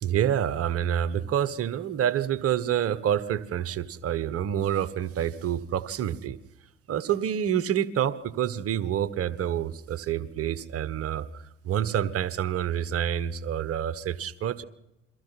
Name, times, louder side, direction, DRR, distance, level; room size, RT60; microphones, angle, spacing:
voice 1, 0.0-6.4 6.9-14.6, right 10 dB, 40° right, 15 dB, 1.3 m, -28 dB
29.0 x 23.0 x 4.2 m, 0.92 s
figure-of-eight pair, 60°, 35 cm